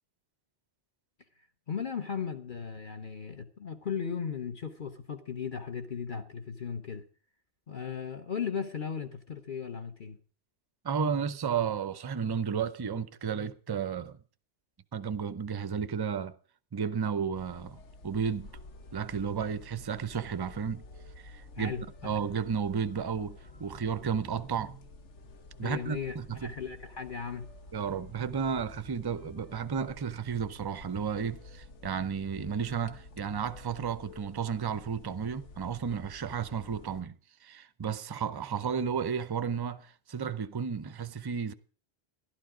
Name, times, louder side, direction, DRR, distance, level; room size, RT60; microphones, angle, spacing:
voice 1, 1.7-7.0 7.7-10.2 21.6-22.1 25.6-27.5, left 6 dB, 50° left, 1.0 m, -36 dB
voice 2, 10.8-14.2 14.9-16.3 16.7-17.8 18.0-18.5 18.9-20.8 21.2-21.7 22.0-24.8 25.6-26.5 27.7-37.2 37.4-41.5, right 6 dB, 30° right, 0.4 m, -33 dB
sound 1, 17.3-37.0, left 2 dB, 80° left, 1.4 m, -51 dB
12.0 x 12.0 x 4.9 m
omnidirectional pair, 1.2 m